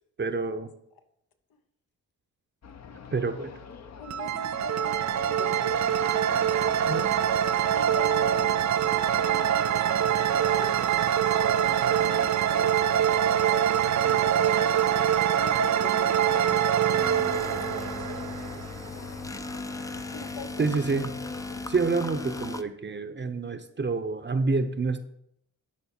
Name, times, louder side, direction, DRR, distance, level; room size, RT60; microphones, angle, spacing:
voice 1, 0.2-0.7 3.1-3.5 6.9-7.1 20.6-21.1 21.7-25.0, right 3 dB, 30° right, 9 dB, 0.8 m, -28 dB
sound 1, 2.6-22.5, left 6 dB, 45° left, 0.8 m, -46 dB
voice 2, 4.0-5.8 6.2-7.1 7.7-10.9 11.5-12.7 14.0-14.4 15.3-19.1 20.1-20.7 23.4-23.5, left 5 dB, 75° left, 6 dB, 1.1 m, -44 dB
sound 2, 4.1-18.9, right 10 dB, 50° right, 0.5 m, -24 dB
sound 3, 16.9-22.6, left 3 dB, 10° left, 0.5 m, -37 dB
11.5 x 4.3 x 4.4 m, 0.74 s
cardioid pair, 60°, 36 cm